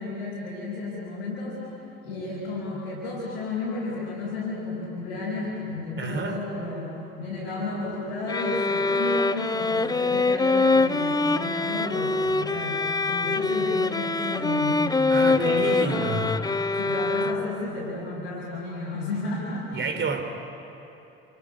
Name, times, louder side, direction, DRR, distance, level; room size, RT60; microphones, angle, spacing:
voice 1, 0.0-1.7 2.0-6.9 7.2-12.8 13.1-14.9 15.2-16.4 16.8-20.0, left 2 dB, 90° left, -9 dB, 5.1 m, -32 dB
voice 2, 6.0-6.5 15.1-16.3 19.7-20.2, right 4 dB, 40° right, 6 dB, 3.2 m, -29 dB
sound 1, 8.3-17.7, left 3 dB, 15° left, 0.7 m, -24 dB
28.0 x 27.0 x 5.0 m, 2.9 s
hypercardioid pair, 60°, 30 cm